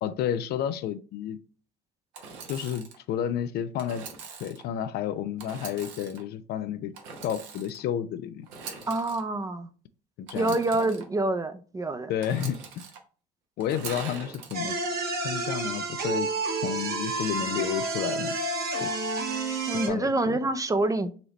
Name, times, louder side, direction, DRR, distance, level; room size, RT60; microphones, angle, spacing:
voice 1, 0.0-1.4 2.5-4.0 4.4-6.9 7.2-8.5 10.2-10.6 12.1-12.8 13.6-14.8 15.2-16.3 16.6-18.4 18.8-18.9 19.9-20.4, left 9 dB, 55° left, 0.4 m, -31 dB
Engine / Sawing, 2.1-3.0 3.8-4.6 5.4-6.2 6.9-7.8 8.4-9.2 10.3-11.0 12.2-13.0 13.6-14.5, right 5 dB, 70° right, 0.9 m, -42 dB
voice 2, 8.9-9.7 10.3-12.1 19.7-21.1, right 2 dB, 15° right, 0.5 m, -27 dB
sound 1, 14.5-19.9, right 3 dB, 50° right, 1.3 m, -30 dB
4.0 x 2.9 x 3.0 m
hypercardioid pair, 65°, 20 cm